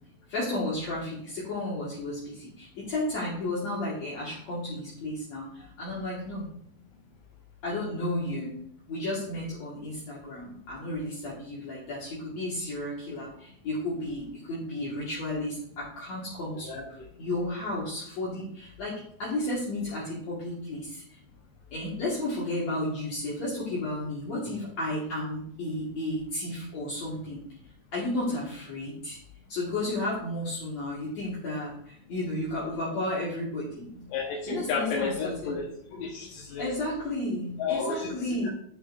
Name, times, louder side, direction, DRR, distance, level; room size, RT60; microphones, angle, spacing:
voice 1, 0.3-5.5 5.8-6.5 7.6-8.5 8.9-13.3 13.6-16.8 17.2-18.9 19.2-20.9 21.7-27.4 27.9-29.2 29.5-31.8 32.1-34.0 34.5-35.6 36.6-38.5, left 1 dB, 55° left, -7 dB, 2.7 m, -33 dB
voice 2, 34.1-35.6 35.9-36.7 37.6-38.5, left 4 dB, 90° left, -4 dB, 2.9 m, -32 dB
9.0 x 8.5 x 2.5 m, 0.67 s
omnidirectional pair, 3.8 m